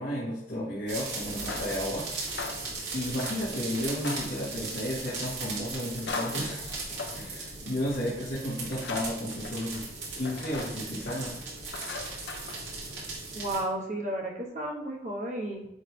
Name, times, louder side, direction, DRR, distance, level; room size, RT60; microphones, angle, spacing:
voice 1, 0.0-2.1 2.9-9.9 10.2-11.4, equal, 55° left, -9 dB, 1.8 m, -33 dB
sound 1, 0.9-13.6, right 3 dB, 90° right, 2.6 m, -38 dB
sound 2, 1.2-13.1, left 4 dB, 80° left, 0.7 m, -42 dB
voice 2, 13.3-15.7, right 1 dB, 40° right, 0 dB, 1.2 m, -33 dB
10.0 x 3.6 x 3.3 m, 0.83 s
head